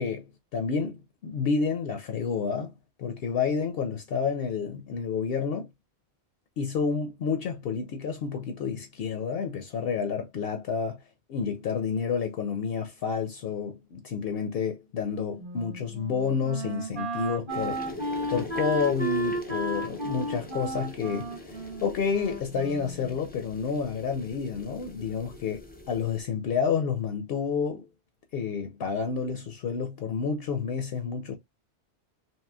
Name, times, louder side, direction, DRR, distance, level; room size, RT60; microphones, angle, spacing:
voice 1, 0.0-2.7 3.0-5.7 6.6-11.0 11.3-17.9 18.3-25.6 25.9-27.9 28.3-31.4, left 6 dB, 65° left, 0.7 m, -29 dB
Wind instrument woodwind instrument, 15.4-23.2, right 1 dB, 30° right, 0.9 m, -34 dB
sound 1, 17.5-26.2, left 1 dB, 10° left, 0.5 m, -44 dB
3.0 x 2.7 x 2.2 m
omnidirectional pair, 1.1 m